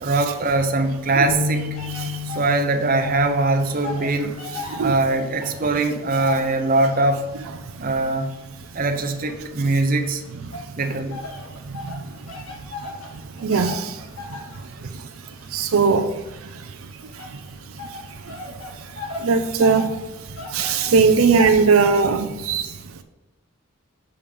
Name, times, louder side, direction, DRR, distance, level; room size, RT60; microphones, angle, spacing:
voice 1, 0.0-1.6 2.3-4.4 4.8-7.2 7.8-8.3 8.7-10.2 10.8-11.2, right 2 dB, 40° right, 5 dB, 0.7 m, -21 dB
sound 1, 1.3-5.5 6.0-6.2 7.1-7.5, left 3 dB, 25° left, 1.1 m, -33 dB
sound 2, 1.7-3.3 3.6-7.2 7.8-9.9 10.5-21.6, left 3 dB, 85° left, 2.0 m, -37 dB
voice 2, 1.9-2.2 4.5-5.0 11.9-12.0 13.4-14.0 15.5-16.1 19.2-20.0 20.5-22.7, right 5 dB, 80° right, 6 dB, 0.5 m, -19 dB
7.2 x 4.9 x 5.3 m, 1.1 s
head